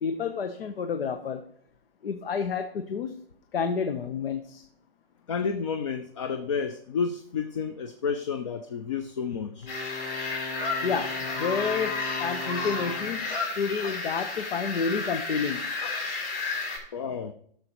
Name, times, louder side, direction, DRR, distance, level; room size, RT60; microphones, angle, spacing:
voice 1, 0.0-1.5 2.0-3.2 3.5-4.6 10.8-13.3 13.6-15.7, left 5 dB, 80° left, 1.0 m, -30 dB
voice 2, 5.3-9.7 16.9-17.3, left 6 dB, 35° left, 0.4 m, -30 dB
Wind instrument woodwind instrument, 9.6-13.4, left 3 dB, 20° left, 1.1 m, -38 dB
sound 1, 9.7-16.8, left 3 dB, 50° left, 4.2 m, -32 dB
15.0 x 6.8 x 3.0 m
hypercardioid pair, 165°, 29 cm